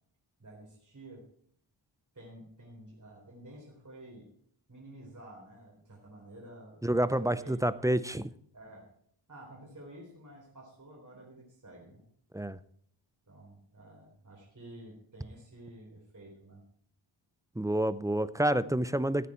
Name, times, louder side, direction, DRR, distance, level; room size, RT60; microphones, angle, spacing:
voice 1, 0.4-1.2 2.1-4.3 4.7-8.0 8.5-8.9 9.3-12.0 13.3-16.6, right 1 dB, 40° right, -2 dB, 3.9 m, -51 dB
voice 2, 6.8-8.3 12.3-12.6 17.6-19.3, right 1 dB, 5° right, 15 dB, 0.5 m, -28 dB
15.5 x 8.3 x 4.4 m, 0.63 s
wide cardioid pair, 85°, 49 cm